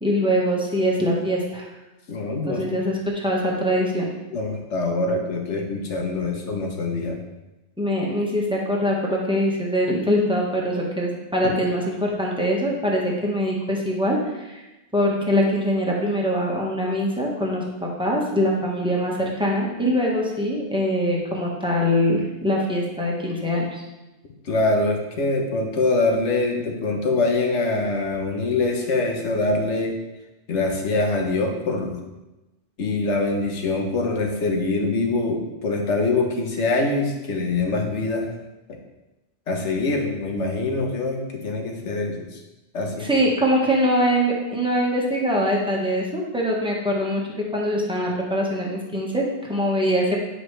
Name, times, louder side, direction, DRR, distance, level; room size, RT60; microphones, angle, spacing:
voice 1, 0.0-1.7 2.4-4.1 7.8-14.6 14.9-23.8 43.0-50.2, equal, 5° right, -3 dB, 1.3 m, -23 dB
voice 2, 2.1-2.6 4.3-7.2 11.4-11.5 24.4-30.0 30.5-32.0 32.8-38.3 39.5-42.2 42.7-43.1, left 3 dB, 80° left, 2 dB, 1.3 m, -24 dB
9.6 x 5.1 x 3.3 m, 1.0 s
omnidirectional pair, 1.2 m